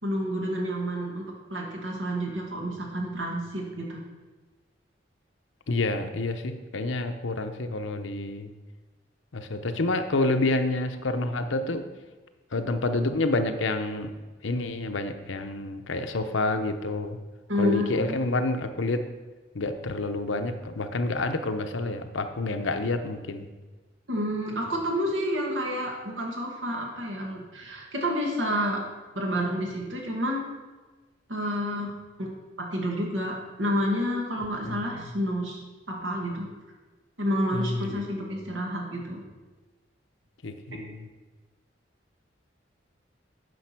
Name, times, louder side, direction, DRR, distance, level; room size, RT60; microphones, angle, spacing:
voice 1, 0.0-3.9 17.5-18.2 24.1-28.8 29.1-30.5 31.3-31.9 32.2-32.3 32.6-36.5 37.2-39.2 40.7-40.8, equal, 90° right, -1 dB, 2.1 m, -29 dB
voice 2, 5.7-8.5 9.3-11.8 12.5-14.1 14.4-17.2 17.6-19.1 19.5-23.5 34.6-34.8 37.5-37.9 40.4-41.1, left 2 dB, 90° left, 7 dB, 0.8 m, -28 dB
9.4 x 5.3 x 5.9 m, 1.3 s
head